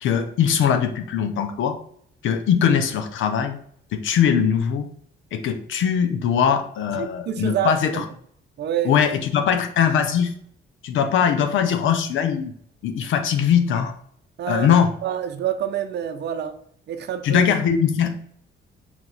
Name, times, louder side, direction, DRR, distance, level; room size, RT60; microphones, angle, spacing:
voice 1, 0.0-1.8 2.2-3.6 3.9-4.9 5.3-8.0 8.8-10.3 10.8-12.5 12.8-13.9 14.5-14.9 17.2-18.2, left 8 dB, 75° left, 7 dB, 0.6 m, -21 dB
voice 2, 6.9-8.0 8.6-8.9 14.4-14.7 15.0-16.6 16.9-17.5, right 10 dB, 60° right, 7 dB, 0.6 m, -27 dB
4.6 x 2.8 x 3.9 m, 0.64 s
cardioid pair, 90°, 20 cm